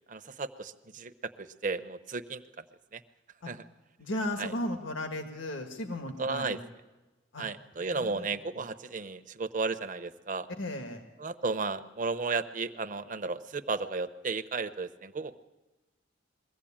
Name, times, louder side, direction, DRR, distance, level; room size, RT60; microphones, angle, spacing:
voice 1, 0.1-1.1 1.4-2.4 2.9-3.0 3.5-3.6 4.4-4.5 6.2-6.6 7.4-10.5 11.2-15.4, right 4 dB, 45° right, 10 dB, 0.9 m, -34 dB
voice 2, 4.0-6.6 7.3-7.4 7.8-8.3 8.6-8.7 10.6-11.0, left 1 dB, 90° left, 5 dB, 1.8 m, -35 dB
22.5 x 15.5 x 8.8 m, 1.1 s
head